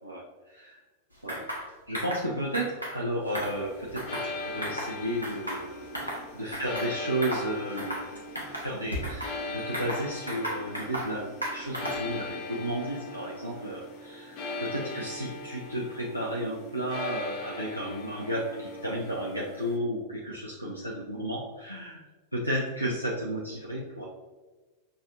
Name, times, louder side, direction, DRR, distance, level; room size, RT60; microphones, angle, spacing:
voice 1, 0.0-0.8 1.2-8.0 8.6-22.0 22.3-24.0, right 1 dB, 90° right, -5 dB, 0.5 m, -33 dB
sound 1, 1.3-1.6 1.9-2.2 2.5-3.0 3.3-4.3 4.6-4.9 5.2-6.2 6.5-6.9 7.2-7.5 7.8-8.1 8.4-9.3 9.7-11.1 11.4-12.1, equal, 90° left, 0.8 m, -34 dB
sound 2, 3.5-19.8, left 2 dB, 40° left, 0.7 m, -40 dB
6.0 x 2.4 x 2.7 m, 1.3 s
figure-of-eight pair, 90°, 0 cm